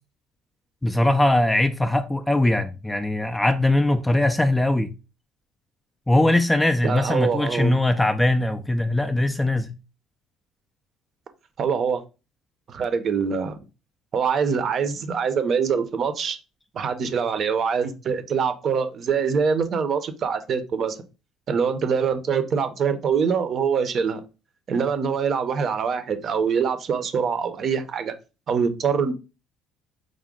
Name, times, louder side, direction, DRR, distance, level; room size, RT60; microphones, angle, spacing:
voice 1, 0.8-4.9 6.1-9.7, left 1 dB, 10° left, 0.3 m, -21 dB
voice 2, 6.8-7.8 11.6-12.0 12.7-13.6 14.1-16.4 16.7-21.0 21.5-24.2 24.7-28.1 28.5-29.1, right 6 dB, 40° right, 0.6 m, -24 dB
4.8 x 2.1 x 3.6 m
cardioid pair, 135°, 0 cm